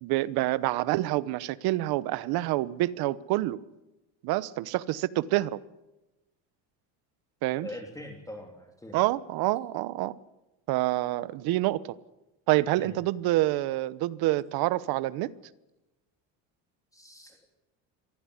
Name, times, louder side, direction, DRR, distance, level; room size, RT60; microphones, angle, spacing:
voice 1, 0.0-3.6 4.2-5.6 7.4-7.7 8.9-10.1 10.7-11.9 12.5-15.3, right 17 dB, 70° right, 17 dB, 1.1 m, -27 dB
voice 2, 7.6-9.0 12.8-12.9 16.9-17.6, left 1 dB, 10° left, 3 dB, 3.1 m, -43 dB
24.0 x 15.5 x 9.8 m, 0.99 s
cardioid pair, 125°, 39 cm